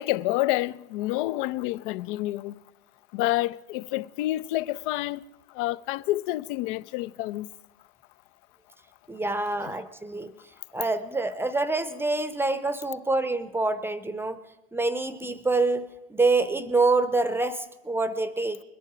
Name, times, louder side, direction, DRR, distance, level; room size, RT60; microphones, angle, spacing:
voice 1, 0.0-2.6 3.1-5.2 5.6-7.5 9.6-9.7, left 17 dB, 55° left, 0.5 m, -28 dB
voice 2, 9.1-10.3 10.7-14.4 14.7-18.6, right 3 dB, 5° right, 0.7 m, -26 dB
21.0 x 10.5 x 4.9 m
hypercardioid pair, 90°, 31 cm